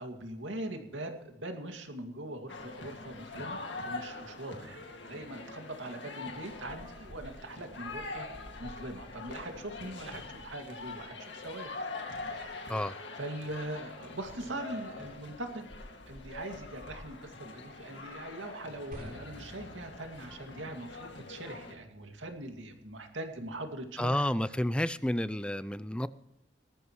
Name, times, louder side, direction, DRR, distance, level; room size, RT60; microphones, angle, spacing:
voice 1, 0.0-3.6 3.8-11.7 12.2-12.8 13.2-15.7 16.1-24.3, right 1 dB, 90° right, 5 dB, 2.3 m, -42 dB
sound 1, 2.5-21.7, left 3 dB, 70° left, 2.2 m, -44 dB
sound 2, 18.9-25.0, equal, 50° right, 4.8 m, -54 dB
voice 2, 24.0-26.1, left 1 dB, 5° left, 16 dB, 0.4 m, -30 dB
19.0 x 13.5 x 3.2 m, 0.83 s
head